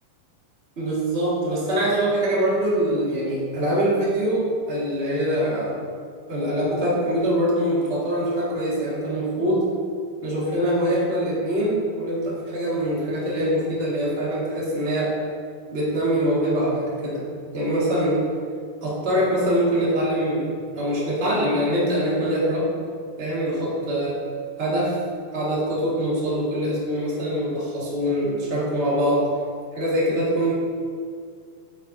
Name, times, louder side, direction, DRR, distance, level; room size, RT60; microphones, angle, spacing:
voice 1, 0.7-5.8 6.3-9.7 10.2-15.1 15.7-17.2 17.5-18.2 18.8-20.5 20.7-22.7 23.2-24.2 24.6-25.0 25.3-29.3 29.7-30.5, equal, 25° right, -7 dB, 1.6 m, -23 dB
9.0 x 8.2 x 2.8 m, 2.1 s
omnidirectional pair, 4.1 m